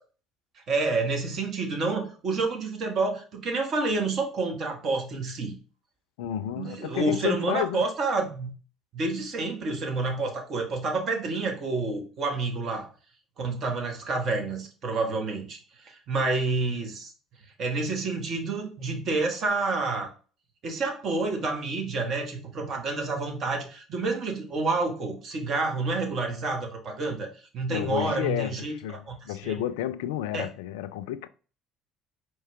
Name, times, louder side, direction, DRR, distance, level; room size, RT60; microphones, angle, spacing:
voice 1, 0.5-5.5 6.6-8.5 8.9-12.9 13.4-17.1 17.6-20.1 20.6-29.6 30.3-30.5, right 3 dB, 50° right, 1.2 m, -29 dB
voice 2, 6.2-7.8 27.7-31.3, left 12 dB, 70° left, 0.3 m, -31 dB
4.5 x 3.1 x 3.4 m
figure-of-eight pair, 55°, 0 cm